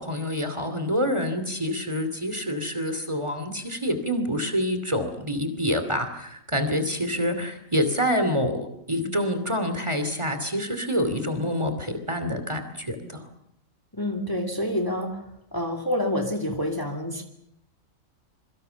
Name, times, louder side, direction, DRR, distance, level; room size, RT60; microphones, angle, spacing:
voice 1, 0.0-13.3, equal, 20° right, 8 dB, 2.8 m, -27 dB
voice 2, 13.9-15.2 15.5-17.2, left 1 dB, 15° left, 4 dB, 2.5 m, -27 dB
27.0 x 23.5 x 7.0 m, 0.77 s
omnidirectional pair, 1.4 m